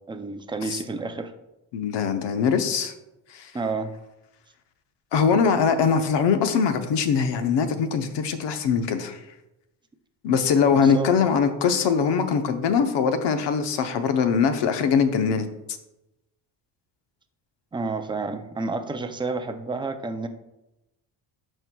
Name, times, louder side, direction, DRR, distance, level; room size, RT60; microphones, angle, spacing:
voice 1, 0.1-1.3 3.5-3.9 10.8-11.2 17.7-20.3, right 3 dB, 10° right, 7 dB, 0.4 m, -30 dB
voice 2, 1.7-2.9 3.3-3.5 5.1-9.2 10.2-15.5, left 6 dB, 65° left, 8 dB, 0.9 m, -22 dB
12.5 x 4.5 x 2.3 m, 0.93 s
cardioid pair, 125°, 45 cm